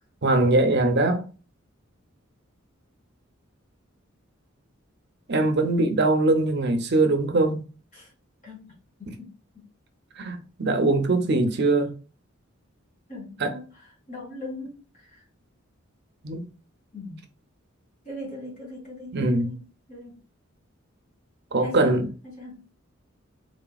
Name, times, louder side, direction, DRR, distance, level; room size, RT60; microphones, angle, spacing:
voice 1, 0.2-1.3 5.3-7.6 9.1-9.2 10.2-11.9 13.4-13.5 16.2-16.5 19.1-19.5 21.5-22.1, right 2 dB, 55° right, 0.7 m, -22 dB
voice 2, 13.1-15.2 16.9-17.2 18.0-20.2 21.6-22.6, left 1 dB, 40° left, 2.0 m, -40 dB
4.1 x 3.2 x 2.3 m
head